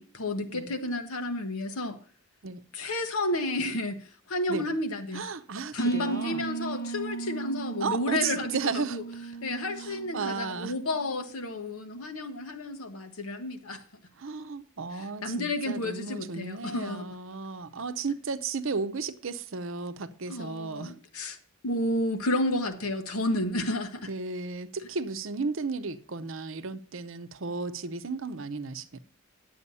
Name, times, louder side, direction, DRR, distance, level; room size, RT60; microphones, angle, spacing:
voice 1, 0.0-2.0 2.7-4.0 4.3-5.2 5.7-9.0 9.4-13.8 15.2-17.0 20.3-21.4 21.6-24.1, left 1 dB, 85° left, 1.1 m, -31 dB
voice 2, 5.1-6.4 7.8-9.0 9.8-10.7 14.2-20.9 24.1-29.0, right 4 dB, 65° right, 0.7 m, -34 dB
sound 1, 5.8-11.3, right 4 dB, 45° left, 0.6 m, -37 dB
9.7 x 7.8 x 5.4 m
head